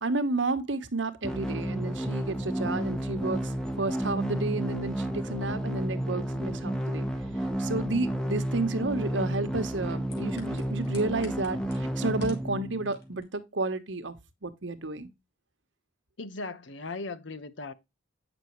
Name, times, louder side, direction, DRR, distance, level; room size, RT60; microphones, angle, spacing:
voice 1, 0.0-3.5 3.8-7.1 7.6-14.1 14.4-15.1, right 2 dB, 85° right, 1.2 m, -31 dB
sound 1, 1.2-13.2, right 1 dB, 5° left, 1.0 m, -31 dB
sound 2, 10.0-12.5 12.8-13.3 13.6-13.8, left 5 dB, 60° left, 2.9 m, -51 dB
voice 2, 16.2-17.7, left 3 dB, 90° left, 1.1 m, -38 dB
9.0 x 6.2 x 3.1 m
head